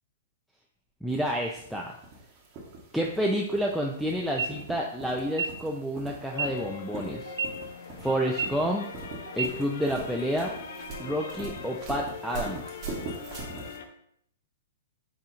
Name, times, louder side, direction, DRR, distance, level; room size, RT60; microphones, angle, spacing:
voice 1, 1.0-2.0 2.9-7.3 8.0-8.8 9.4-10.5 11.0-12.6, equal, ahead, -2 dB, 0.3 m, -29 dB
sound 1, 1.1-13.8, right 3 dB, 30° right, 0.9 m, -42 dB
sound 2, 4.3-4.5 5.3-5.5 6.3-6.5 7.3-7.5 8.3-8.5 9.3-9.5, right 6 dB, 85° right, 0.5 m, -29 dB
sound 3, 6.3-13.9, left 6 dB, 70° left, 0.4 m, -41 dB
4.2 x 3.7 x 2.4 m, 0.69 s
hypercardioid pair, 150°, 0 cm